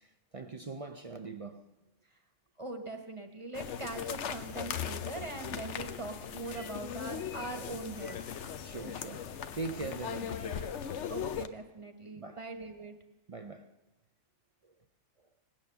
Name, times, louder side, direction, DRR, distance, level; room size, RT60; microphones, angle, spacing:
voice 1, 0.0-1.6 6.4-6.7 7.4-7.6 8.0-10.8 12.1-12.5 13.3-13.7 14.6-14.8, right 3 dB, 50° right, 0.4 m, -43 dB
voice 2, 2.6-8.4 11.1-12.9, right 2 dB, 25° right, 1.3 m, -41 dB
sound 1, 3.5-11.5, left 8 dB, 60° left, 0.9 m, -39 dB
18.5 x 9.1 x 6.7 m
omnidirectional pair, 1.4 m